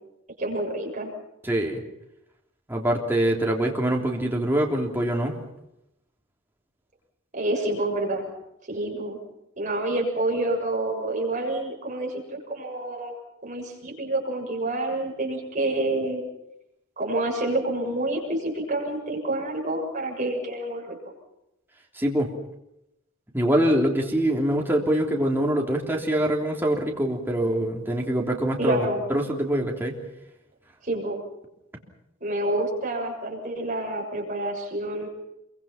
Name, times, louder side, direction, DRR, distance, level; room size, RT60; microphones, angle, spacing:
voice 1, 0.4-1.1 7.3-8.2 8.7-9.2 9.6-13.1 13.4-16.2 17.0-21.0 28.6-29.0 30.8-31.2 32.2-35.1, right 1 dB, 35° right, 0 dB, 6.9 m, -28 dB
voice 2, 1.4-1.8 2.7-5.4 21.9-22.3 23.3-30.0, right 1 dB, 10° right, 0 dB, 3.3 m, -24 dB
27.0 x 24.0 x 5.9 m, 0.86 s
head